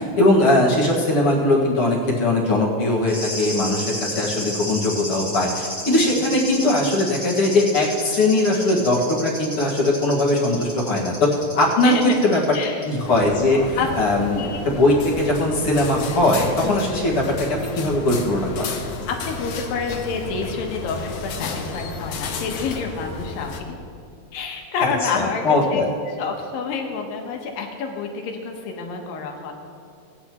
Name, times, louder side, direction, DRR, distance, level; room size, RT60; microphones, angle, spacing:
voice 1, 0.0-11.9 12.2-12.4 12.8-18.9 25.1-25.9, left 2 dB, 50° left, -4 dB, 2.2 m, -20 dB
sound 1, 3.1-12.9 13.2-13.3, equal, 10° right, 1.1 m, -32 dB
voice 2, 11.8-12.2 12.5-12.9 13.8-13.9 14.4-14.7 19.1-23.6 24.3-25.8 26.1-29.5, left 5 dB, 90° left, 2 dB, 2.9 m, -28 dB
sound 2, 13.0-23.6, left 4 dB, 70° left, 2.0 m, -32 dB
18.5 x 10.0 x 3.0 m, 2.4 s
omnidirectional pair, 4.0 m